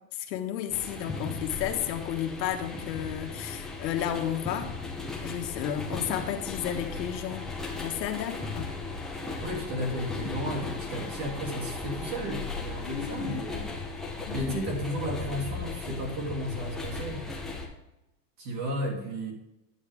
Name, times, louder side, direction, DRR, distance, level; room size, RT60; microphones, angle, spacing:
voice 1, 0.1-4.7 5.2-7.4 7.8-8.7 12.8-13.4 14.3-14.6, left 10 dB, 85° left, 5 dB, 1.4 m, -32 dB
sound 1, 0.7-17.7, left 3 dB, ahead, 0.5 m, -37 dB
voice 2, 9.4-13.6 14.3-17.3 18.4-19.3, equal, 50° right, 0 dB, 2.7 m, -33 dB
9.6 x 6.8 x 3.4 m, 0.94 s
supercardioid pair, 160°, 50 cm